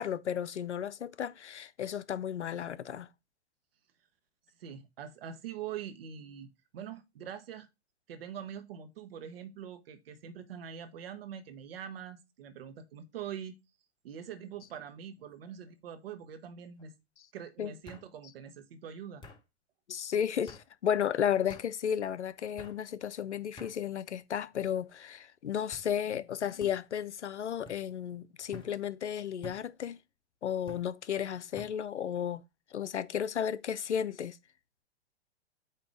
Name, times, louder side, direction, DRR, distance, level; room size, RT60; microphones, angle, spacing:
voice 1, 0.0-3.1 17.6-17.7 19.9-30.0 30.4-32.4 32.7-34.4, left 9 dB, 90° left, 0.5 m, -33 dB
voice 2, 4.6-7.7 8.1-13.6 14.0-16.9 17.3-19.2, right 8 dB, 60° right, 1.1 m, -44 dB
sound 1, 14.4-14.8 15.2-15.7 16.8-16.9 17.9-18.1 19.2-19.4 20.5-20.7 21.5-21.7 22.6-22.8 23.6-23.8 24.5-24.9 25.7-25.9 26.6-26.8 27.6-27.8 28.5-28.7 29.4-29.6 30.7-30.9 31.6-31.8, left 1 dB, 15° left, 1.1 m, -50 dB
8.6 x 2.9 x 4.8 m
hypercardioid pair, 115°, 34 cm